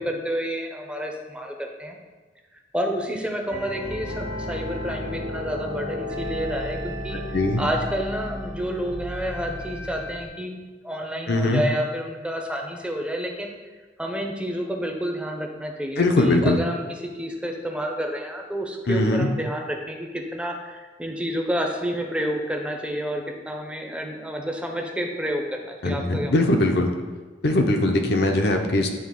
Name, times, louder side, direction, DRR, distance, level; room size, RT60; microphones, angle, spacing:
voice 1, 0.0-2.0 2.7-7.2 7.6-13.6 14.0-26.3, equal, 5° right, 2 dB, 0.6 m, -29 dB
sound 1, 3.5-10.3, left 1 dB, 85° right, 1.2 m, -33 dB
voice 2, 11.3-11.6 16.0-16.6 18.9-19.3 25.8-26.9 27.4-28.9, left 2 dB, 65° left, 4 dB, 0.7 m, -21 dB
8.7 x 3.4 x 3.7 m, 1.3 s
head